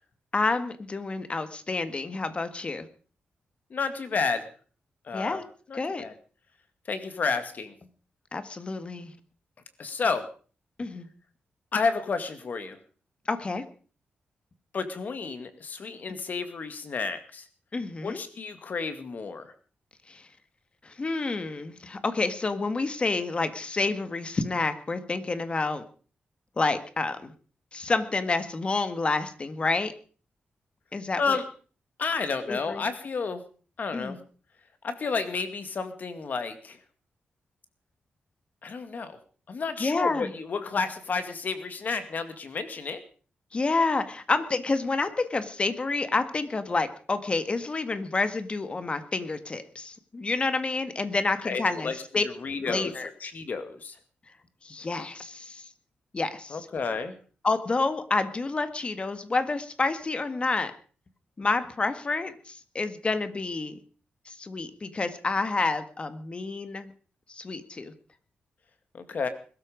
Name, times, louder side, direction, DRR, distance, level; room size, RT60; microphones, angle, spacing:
voice 1, 0.3-2.9 5.1-5.4 5.7-6.0 8.3-9.1 10.8-11.1 13.3-13.6 17.7-18.2 20.1-20.2 20.8-25.8 26.6-27.3 27.7-29.9 30.9-31.4 32.5-32.8 33.9-34.2 39.8-40.3 43.5-52.2 52.7-53.1 54.6-55.7 56.1-56.7 57.4-60.7 61.4-63.8 64.3-66.9 67.3-67.9, left 3 dB, 30° left, 10 dB, 1.8 m, -29 dB
voice 2, 3.7-4.5 5.1-5.4 5.7-6.1 6.9-7.7 9.8-10.2 11.7-12.8 14.7-17.4 18.0-19.5 31.2-31.4 32.0-33.4 33.8-34.2 34.8-36.8 38.6-39.2 39.5-43.0 51.4-51.9 52.2-52.9 53.2-53.9 56.5-57.2 68.9-69.3, left 4 dB, 50° left, 9 dB, 2.2 m, -31 dB
21.5 x 13.0 x 5.2 m, 0.41 s
wide cardioid pair, 125°, 4 cm